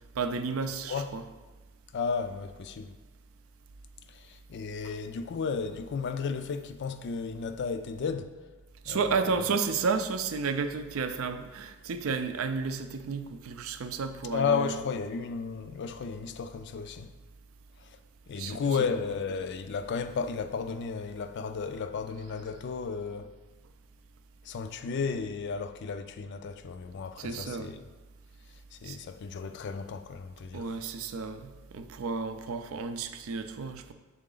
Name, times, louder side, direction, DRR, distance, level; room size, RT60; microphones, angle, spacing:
voice 1, 0.1-1.2 4.8-4.9 8.8-14.8 18.3-19.0 27.2-27.8 28.8-29.0 30.5-33.9, right 5 dB, 70° right, 0.4 m, -32 dB
voice 2, 1.9-3.0 4.1-8.4 8.9-9.5 14.3-17.1 17.8-18.0 18.3-23.3 24.4-27.8 28.7-30.7, left 5 dB, 55° left, 0.3 m, -33 dB
6.5 x 3.9 x 3.8 m
head